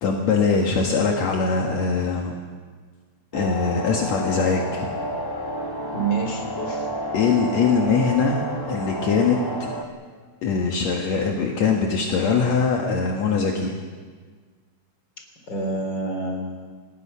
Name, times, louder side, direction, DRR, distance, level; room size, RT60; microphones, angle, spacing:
voice 1, 0.0-2.4 3.3-4.9 7.1-9.7 10.4-13.7, left 5 dB, 65° left, 1 dB, 2.7 m, -22 dB
sound 1, 3.3-9.8, equal, 20° left, 0.6 m, -30 dB
voice 2, 5.9-6.9 15.5-16.7, right 3 dB, 35° left, 2 dB, 4.0 m, -27 dB
28.5 x 19.0 x 5.6 m, 1.5 s
omnidirectional pair, 3.5 m